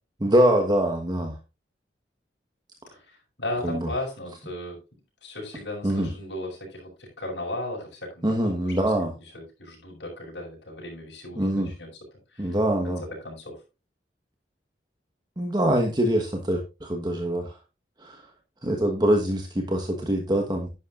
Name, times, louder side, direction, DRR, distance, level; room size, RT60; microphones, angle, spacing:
voice 1, 0.2-1.4 3.6-3.9 5.8-6.1 8.2-9.1 11.4-11.7 12.4-13.0 15.4-17.5 18.0-18.2 18.6-20.7, right 1 dB, 25° right, 3 dB, 1.3 m, -24 dB
voice 2, 2.9-4.8 5.2-8.7 9.1-11.9 12.3-12.6 12.8-13.6, left 1 dB, 80° left, -2 dB, 5.8 m, -36 dB
11.0 x 10.5 x 2.5 m, 0.28 s
head